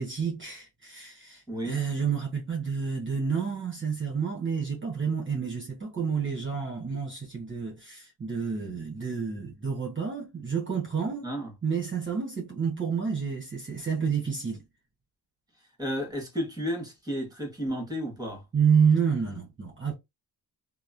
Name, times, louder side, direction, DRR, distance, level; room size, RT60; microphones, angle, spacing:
voice 1, 0.0-11.3 11.6-14.6 18.5-19.9, right 6 dB, 30° right, 1.1 m, -29 dB
voice 2, 1.5-1.8 11.2-11.5 15.8-18.4, equal, 10° right, 1.3 m, -32 dB
2.9 x 2.0 x 2.5 m
cardioid pair, 70°, 41 cm